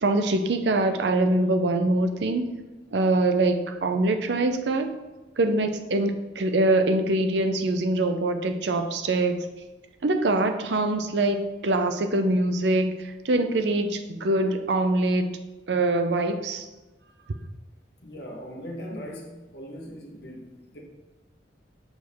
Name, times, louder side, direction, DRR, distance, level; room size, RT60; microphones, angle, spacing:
voice 1, 0.0-2.5 2.9-4.9 5.4-9.5 10.0-15.3 15.7-16.7, right 2 dB, 70° right, 7 dB, 0.6 m, -24 dB
voice 2, 18.0-20.8, equal, 60° left, -1 dB, 1.2 m, -39 dB
6.5 x 4.7 x 3.5 m, 1.1 s
head